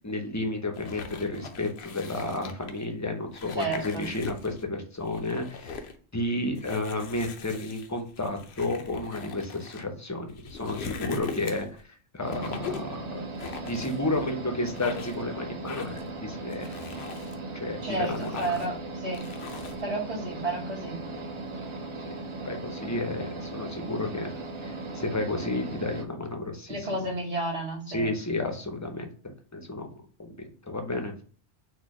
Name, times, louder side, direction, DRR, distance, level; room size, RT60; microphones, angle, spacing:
voice 1, 0.0-5.8 6.1-11.8 12.1-13.2 13.7-16.7 17.6-18.6 22.1-22.2 22.4-24.3 24.6-27.0 27.9-29.1 29.5-29.9 30.2-30.3 30.7-31.1, left 2 dB, 20° left, 4 dB, 0.6 m, -32 dB
sound 1, 0.7-2.8 3.3-4.6 5.0-6.0 6.6-9.8 10.3-11.8 12.3-12.9 13.4-14.3 14.7-15.2 15.7-16.1 16.5-17.4 17.8-18.8 19.1-19.8, left 5 dB, 70° left, 0.9 m, -40 dB
voice 2, 3.6-4.0 17.8-19.3 19.8-21.0 26.7-28.1, right 2 dB, 90° right, -1 dB, 1.9 m, -31 dB
sound 2, 12.2-26.0, right 3 dB, 35° right, 0.6 m, -38 dB
4.4 x 2.3 x 4.6 m, 0.42 s
omnidirectional pair, 1.1 m